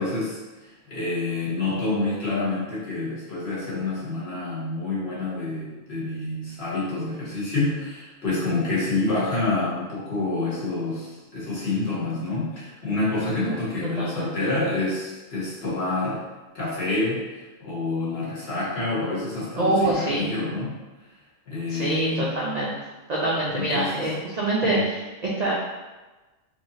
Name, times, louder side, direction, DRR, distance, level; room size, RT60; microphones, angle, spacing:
voice 1, 0.0-16.2 16.5-20.8 21.5-22.3 23.5-24.1 24.6-24.9, left 2 dB, 55° left, -8 dB, 1.3 m, -28 dB
voice 2, 13.2-14.3 19.6-20.3 21.7-22.8 23.1-25.5, right 2 dB, 65° right, -5 dB, 0.4 m, -26 dB
3.3 x 3.0 x 2.6 m, 1.2 s
omnidirectional pair, 1.3 m